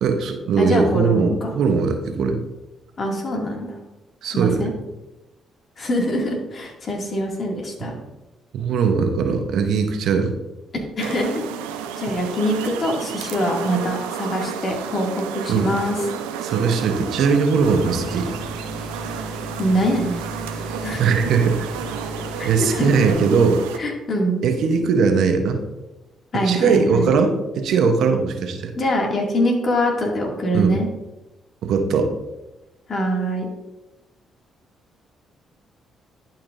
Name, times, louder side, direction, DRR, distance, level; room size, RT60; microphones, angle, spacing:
voice 1, 0.0-2.4 4.2-4.7 7.8-7.9 8.5-10.3 15.5-15.8 16.4-18.3 21.0-21.7 22.4-23.6 24.4-25.6 26.4-28.7 30.5-30.8 31.6-32.1, right 5 dB, 70° right, 6 dB, 0.9 m, -20 dB
voice 2, 0.6-1.5 3.0-3.8 4.2-4.7 5.8-7.9 11.0-11.4 11.7-15.9 19.6-20.2 20.8-21.0 22.4-22.9 23.8-24.4 26.3-27.1 28.8-30.9 32.9-33.5, equal, 50° left, -1 dB, 2.3 m, -23 dB
sound 1, 11.0-23.8, right 7 dB, 90° right, 0.5 m, -32 dB
sound 2, 17.6-23.1, right 1 dB, ahead, 2.9 m, -35 dB
11.5 x 5.8 x 2.6 m, 1.0 s
hypercardioid pair, 50°, 0 cm